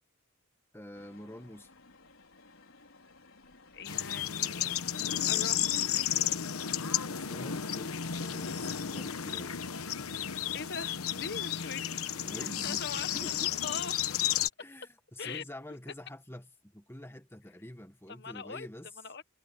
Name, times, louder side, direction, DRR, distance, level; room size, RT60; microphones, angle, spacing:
voice 1, 0.7-1.7 7.2-9.6 11.9-13.5 14.6-18.9, left 1 dB, 10° left, 1.5 m, -47 dB
nákladní vlak, 0.9-10.2, left 2 dB, 70° left, 5.1 m, -58 dB
voice 2, 3.7-4.7 5.3-5.6 10.5-12.0 12.4-13.1 13.6-14.4 15.2-15.4 18.1-18.7 19.0-19.2, left 5 dB, 50° left, 1.3 m, -41 dB
sound 1, 3.9-14.5, left 10 dB, 85° left, 1.0 m, -32 dB
head